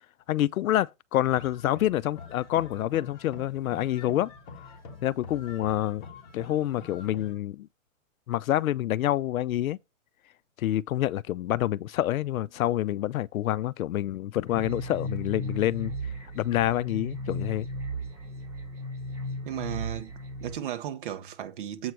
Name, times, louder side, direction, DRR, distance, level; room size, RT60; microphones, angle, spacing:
voice 1, 0.3-4.3 5.0-6.0 6.3-7.7 8.3-9.8 10.6-15.9 16.4-17.7, left 13 dB, 85° left, 0.6 m, -27 dB
sound 1, 1.3-7.3, left 5 dB, 35° left, 2.0 m, -46 dB
sound 2, 14.5-20.5, equal, 5° right, 2.3 m, -36 dB
voice 2, 19.4-20.1 20.4-21.9, right 11 dB, 40° right, 1.1 m, -35 dB
7.9 x 4.7 x 6.2 m
hypercardioid pair, 165°, 41 cm